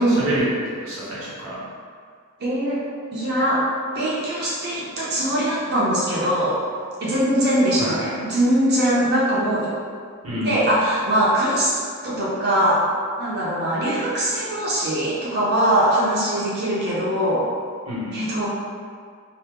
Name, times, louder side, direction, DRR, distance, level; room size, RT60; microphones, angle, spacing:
voice 1, 0.0-1.6 7.8-8.0 10.2-10.6 17.9-18.2, equal, 85° right, -8 dB, 1.1 m, -27 dB
voice 2, 2.4-2.8 3.1-3.7 3.9-6.6 7.0-9.7 10.4-11.8 12.0-12.8 13.2-17.5 18.1-18.5, right 1 dB, 50° right, -7 dB, 0.7 m, -21 dB
2.8 x 2.2 x 3.5 m, 2.1 s
head